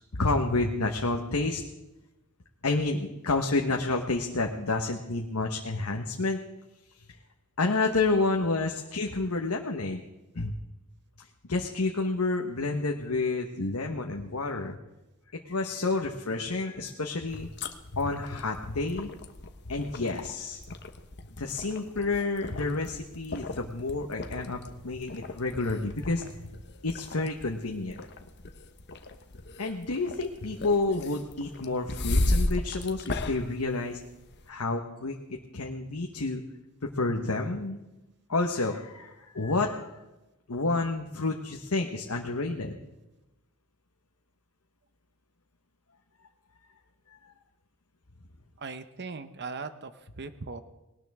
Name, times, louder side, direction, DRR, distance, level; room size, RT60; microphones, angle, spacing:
voice 1, 0.1-1.6 2.6-6.4 7.6-10.0 10.3-10.5 11.2-14.8 15.5-17.5 17.9-19.1 19.7-20.6 21.4-26.3 26.8-28.0 29.6-34.0 34.5-35.1 35.5-36.4 36.9-37.8 38.3-39.9 40.5-42.8 47.2-47.3, left 3 dB, 70° left, 2 dB, 1.2 m, -29 dB
sound 1, 17.3-34.5, left 2 dB, 50° left, 1.1 m, -36 dB
voice 2, 48.6-50.6, right 4 dB, 50° right, 11 dB, 0.8 m, -39 dB
19.5 x 18.5 x 3.6 m, 1.0 s
head